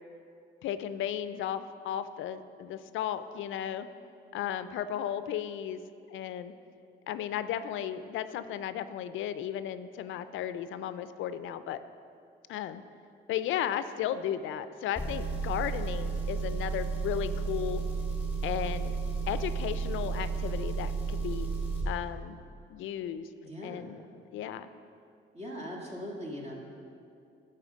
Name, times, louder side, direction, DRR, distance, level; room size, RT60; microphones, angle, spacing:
voice 1, 0.6-3.9 4.3-5.8 6.1-6.5 7.1-11.8 12.5-12.8 13.3-17.8 18.4-19.0 19.3-21.5 21.9-22.4 22.7-23.3 23.6-24.0 24.3-24.7, left 10 dB, 80° left, 12 dB, 0.4 m, -34 dB
Engine, 15.0-21.9, right 4 dB, 5° right, 2.1 m, -32 dB
voice 2, 23.4-23.9 25.3-26.5, equal, 35° right, -2 dB, 2.0 m, -40 dB
11.0 x 4.3 x 6.3 m, 2.5 s
cardioid pair, 90°, 20 cm